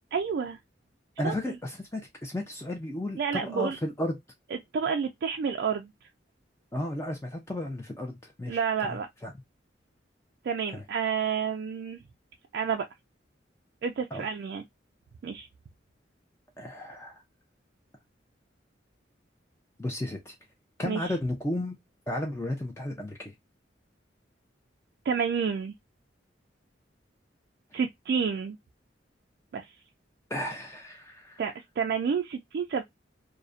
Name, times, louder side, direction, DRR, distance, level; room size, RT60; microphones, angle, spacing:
voice 1, 0.1-0.6 1.2-1.5 3.2-3.8 4.5-6.1 8.5-9.1 10.4-12.0 12.5-12.9 13.8-14.6 15.2-15.5 20.8-21.1 25.1-25.7 27.7-28.6 29.5-29.7 31.4-32.8, right 6 dB, 60° right, 0.3 m, -30 dB
voice 2, 1.2-4.1 6.7-9.3 10.7-10.8 14.1-14.2 16.6-17.2 19.8-20.3 20.8-21.8 22.1-23.3 30.3-31.4, left 1 dB, 15° left, 0.4 m, -34 dB
2.4 x 2.1 x 2.4 m
head